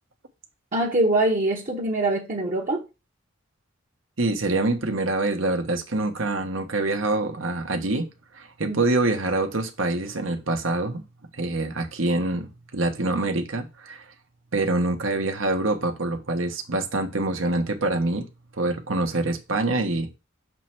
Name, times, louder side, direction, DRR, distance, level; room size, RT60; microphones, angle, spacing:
voice 1, 0.7-2.8 8.6-8.8, right 2 dB, 40° right, 1.1 m, -23 dB
voice 2, 4.2-8.1 8.3-11.0 11.3-14.1 14.5-18.3 18.6-20.1, right 2 dB, 70° right, 1.3 m, -25 dB
6.7 x 3.3 x 5.9 m
head